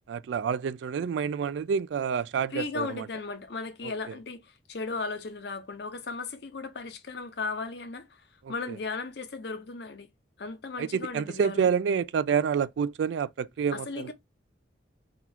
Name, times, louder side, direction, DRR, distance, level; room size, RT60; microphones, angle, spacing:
voice 1, 0.1-3.1 4.1-4.2 8.4-8.8 10.8-14.1, right 6 dB, 80° right, 0.3 m, -28 dB
voice 2, 2.5-10.1 10.4-11.7 13.7-14.1, left 4 dB, 65° left, 0.7 m, -36 dB
3.7 x 2.4 x 4.3 m
head